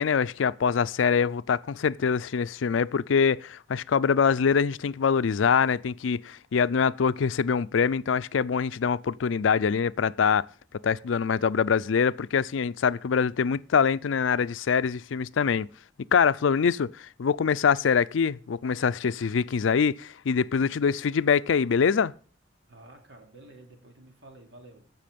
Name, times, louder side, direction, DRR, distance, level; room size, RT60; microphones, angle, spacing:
voice 1, 0.0-10.5 10.8-15.7 16.1-16.9 17.2-22.1, left 6 dB, 80° left, 0.4 m, -24 dB
voice 2, 22.7-24.8, right 2 dB, 65° right, 2.9 m, -51 dB
16.0 x 6.3 x 5.2 m
head